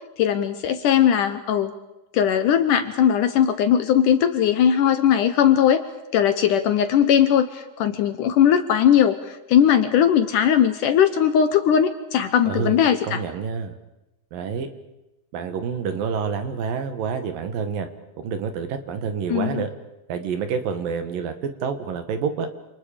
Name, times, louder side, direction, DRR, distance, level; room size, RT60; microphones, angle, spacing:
voice 1, 0.2-1.7 2.1-5.8 6.1-13.2 19.3-19.6, left 9 dB, 70° left, 9 dB, 2.2 m, -19 dB
voice 2, 12.5-12.8 13.0-13.7 14.3-14.7 15.3-17.9 18.2-19.7 20.1-22.5, right 6 dB, 65° right, 8 dB, 3.2 m, -28 dB
28.5 x 27.5 x 5.1 m, 0.95 s
omnidirectional pair, 4.4 m